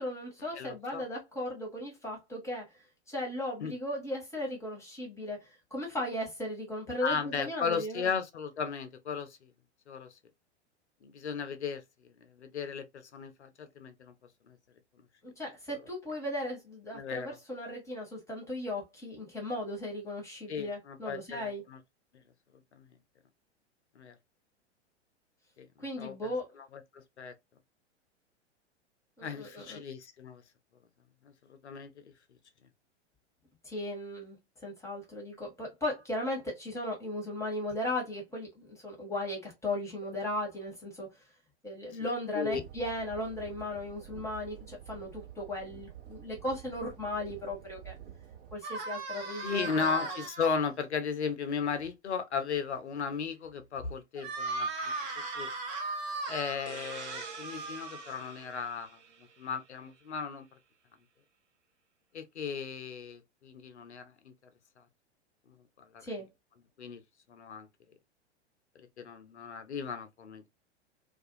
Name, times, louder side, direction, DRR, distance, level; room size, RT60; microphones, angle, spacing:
voice 1, 0.0-8.1 15.2-21.6 25.8-26.5 29.2-29.8 33.6-34.4 34.6-41.2 41.6-47.9 48.5-50.2 66.0-66.3, left 1 dB, 10° left, 1.1 m, -37 dB
voice 2, 0.5-1.0 3.6-3.7 7.0-9.5 9.9-10.2 11.0-14.1 14.5-14.6 16.9-17.4 20.5-21.8 22.7-22.9 24.0-24.2 25.6-25.7 26.0-27.3 29.2-30.4 31.2-32.1 42.0-42.1 42.3-42.6 49.4-55.5 56.3-59.0 59.4-60.5 62.1-64.3 65.8-66.0 66.8-67.0 67.3-67.7 68.8-70.4, left 6 dB, 70° left, 0.7 m, -36 dB
sound 1, 42.5-48.6, right 10 dB, 50° right, 0.9 m, -49 dB
sound 2, 48.6-50.5 54.2-58.5, right 3 dB, 20° right, 0.5 m, -37 dB
sound 3, 56.7-60.1, right 6 dB, 75° right, 0.5 m, -49 dB
2.4 x 2.3 x 2.7 m
figure-of-eight pair, 100°, 35 cm